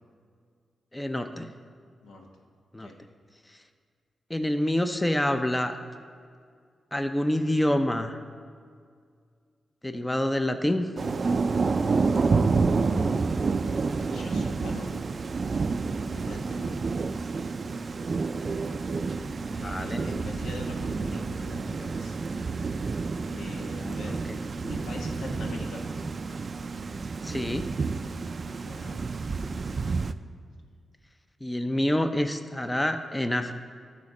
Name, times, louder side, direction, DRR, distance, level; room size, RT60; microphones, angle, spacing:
voice 1, 0.9-1.5 2.7-2.9 4.3-5.8 6.9-8.2 9.8-10.9 19.6-20.0 24.1-24.4 27.2-27.7 31.4-33.5, left 1 dB, 15° left, 8 dB, 0.5 m, -27 dB
Thunder / Rain, 11.0-30.1, right 4 dB, 50° right, 0.3 m, -29 dB
voice 2, 12.7-13.2 14.0-14.9 16.0-16.8 19.5-22.2 23.2-24.2 24.6-25.8 28.4-29.1, left 2 dB, 90° left, 1 dB, 1.1 m, -42 dB
12.5 x 4.3 x 4.9 m, 2.1 s
cardioid pair, 60°, 0 cm